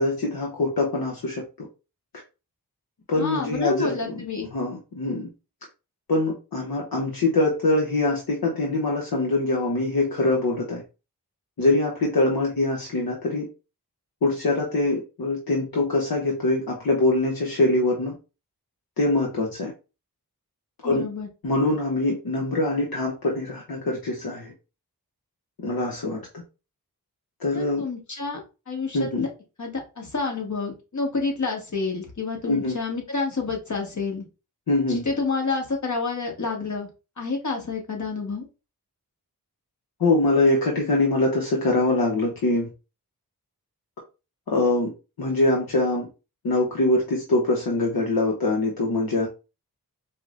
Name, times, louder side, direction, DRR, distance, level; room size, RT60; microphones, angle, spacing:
voice 1, 0.0-1.7 3.1-4.2 4.5-5.3 6.1-10.8 11.6-13.5 14.2-18.1 19.0-19.7 20.8-21.0 21.4-24.5 25.6-26.2 27.4-27.8 28.9-29.3 32.5-32.7 34.7-35.0 40.0-42.7 44.5-44.9 45.2-46.1 46.4-49.3, left 2 dB, 70° left, -1 dB, 0.8 m, -23 dB
voice 2, 3.1-4.5 20.8-21.3 27.5-28.4 28.7-29.3 29.6-34.2 34.9-36.9 37.2-38.5, left 4 dB, 50° left, 1 dB, 1.2 m, -29 dB
4.6 x 2.1 x 2.4 m, 0.30 s
cardioid pair, 40°, 38 cm